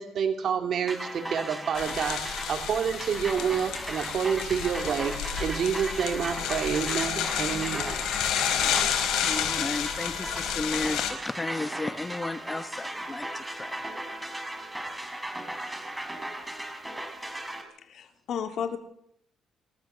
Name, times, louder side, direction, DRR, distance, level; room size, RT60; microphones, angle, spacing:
voice 1, 0.0-8.0, right 7 dB, 60° right, 5 dB, 2.7 m, -28 dB
sound 1, 0.9-17.6, right 1 dB, 10° right, 5.6 m, -37 dB
sound 2, 1.7-11.1, left 9 dB, 90° left, 4.4 m, -30 dB
voice 2, 9.2-13.8, left 2 dB, 20° left, 12 dB, 1.3 m, -34 dB
voice 3, 17.8-18.8, left 7 dB, 70° left, 5 dB, 3.2 m, -33 dB
27.5 x 14.0 x 6.9 m, 0.73 s
cardioid pair, 90°, 0 cm